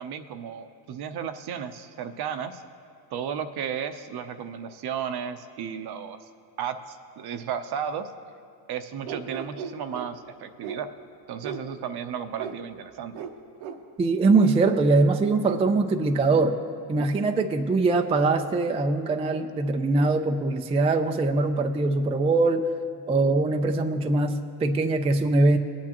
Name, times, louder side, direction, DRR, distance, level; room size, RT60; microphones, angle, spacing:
voice 1, 0.0-2.6 3.1-6.3 6.6-8.1 8.7-10.9 11.3-13.2, right 8 dB, 50° right, 9 dB, 0.8 m, -34 dB
sound 1, 9.1-10.1 10.6-10.8 11.4-11.6 12.4-12.5 13.1-13.3 13.6-13.8 14.3-14.5 15.4-15.6, right 7 dB, 80° right, 1.0 m, -36 dB
voice 2, 14.0-16.6 16.9-22.7 23.1-25.6, right 3 dB, 15° right, 6 dB, 0.4 m, -22 dB
19.0 x 8.6 x 3.0 m, 2.5 s
supercardioid pair, 95°, 48 cm